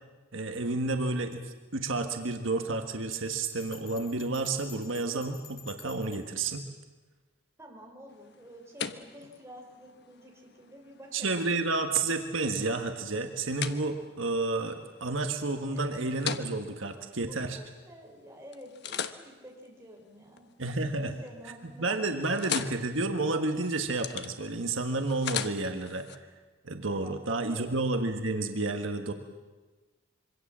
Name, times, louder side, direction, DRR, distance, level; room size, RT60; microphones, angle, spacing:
voice 1, 0.3-6.6 11.1-17.6 20.6-21.1 21.8-26.1 26.6-29.1, right 3 dB, 70° right, 5 dB, 1.6 m, -30 dB
Bell, 3.1-6.3, left 7 dB, 80° left, 3.8 m, -50 dB
voice 2, 7.6-11.4 15.7-15.8 17.3-20.5 21.0-22.3 26.9-27.1 27.4-27.7, equal, 15° right, 0 dB, 4.5 m, -50 dB
sound 1, 8.1-18.1 18.5-20.8 21.2-21.6 21.9-26.2, left 7 dB, 55° left, 1.1 m, -41 dB
26.0 x 24.0 x 7.5 m, 1.3 s
head